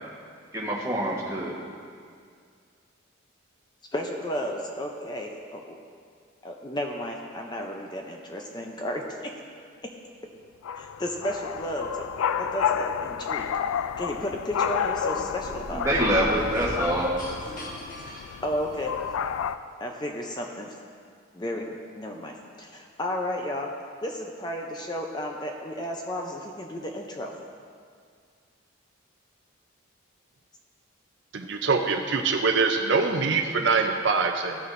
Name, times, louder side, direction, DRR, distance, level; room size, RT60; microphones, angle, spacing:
voice 1, 0.5-1.5 15.7-17.2, right 1 dB, 15° right, -4 dB, 1.2 m, -25 dB
voice 2, 3.9-5.8 6.4-9.3 10.8-12.1 12.4-15.9 18.4-18.9 19.8-20.7 21.3-23.7 24.0-27.3, equal, 20° left, 1 dB, 0.5 m, -33 dB
sound 1, 10.6-19.6, left 8 dB, 80° left, 0.3 m, -30 dB
sound 2, 15.1-19.1, equal, 40° left, 1.1 m, -38 dB
voice 3, 31.3-34.6, right 4 dB, 60° right, 3 dB, 0.5 m, -24 dB
14.5 x 6.9 x 2.6 m, 2.1 s
head